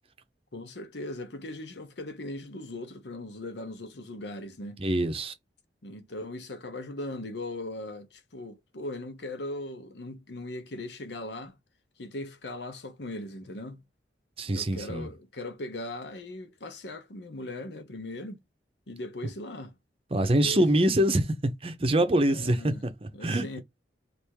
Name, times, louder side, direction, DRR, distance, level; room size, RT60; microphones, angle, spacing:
voice 1, 0.5-4.8 5.8-11.6 12.0-13.8 14.5-18.4 18.9-19.7 20.2-20.6 22.3-22.8 23.1-23.6, left 1 dB, 75° left, 0.9 m, -39 dB
voice 2, 4.8-5.3 14.4-15.1 20.1-23.5, right 1 dB, 30° right, 0.7 m, -25 dB
3.4 x 2.6 x 4.6 m
head